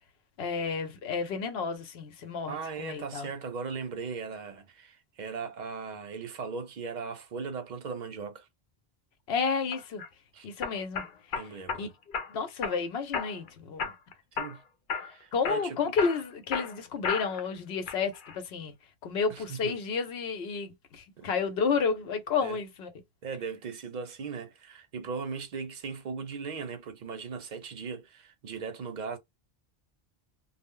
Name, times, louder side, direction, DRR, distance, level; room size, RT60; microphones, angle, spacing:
voice 1, 0.4-3.3 9.3-10.0 10.4-11.1 11.8-11.9 12.3-13.9 15.3-18.7 19.0-22.9, left 5 dB, 90° left, 0.9 m, -31 dB
voice 2, 2.5-8.5 10.3-10.5 11.3-11.9 14.3-14.6 15.0-15.9 19.3-19.8 21.2-21.3 22.4-22.6 23.2-29.2, right 5 dB, 55° right, 0.6 m, -38 dB
sound 1, 9.7-10.1 10.6-11.8 12.1-12.8 13.1-13.5 13.8-14.6 14.9-15.1 15.4-17.5 17.9-18.4, left 6 dB, 60° left, 0.7 m, -34 dB
2.0 x 2.0 x 3.6 m
omnidirectional pair, 1.0 m